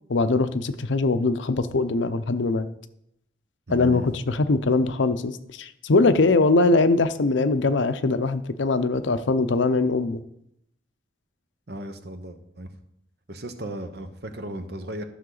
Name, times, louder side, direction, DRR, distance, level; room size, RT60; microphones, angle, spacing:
voice 1, 0.1-2.7 3.7-10.2, left 3 dB, 80° left, 11 dB, 0.6 m, -22 dB
voice 2, 3.7-4.1 11.7-12.7 13.3-15.0, right 1 dB, 55° right, 8 dB, 0.9 m, -36 dB
12.5 x 6.5 x 3.9 m, 0.78 s
head